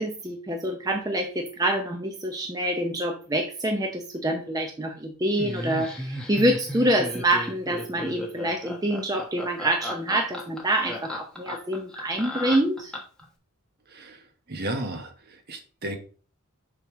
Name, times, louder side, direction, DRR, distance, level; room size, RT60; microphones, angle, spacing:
voice 1, 0.0-12.9, right 1 dB, 15° right, 2 dB, 0.7 m, -26 dB
Laughter, 5.4-13.2, left 1 dB, 5° left, 1.2 m, -35 dB
voice 2, 13.9-16.0, right 1 dB, 45° right, 6 dB, 1.2 m, -34 dB
7.0 x 3.2 x 6.0 m, 0.38 s
head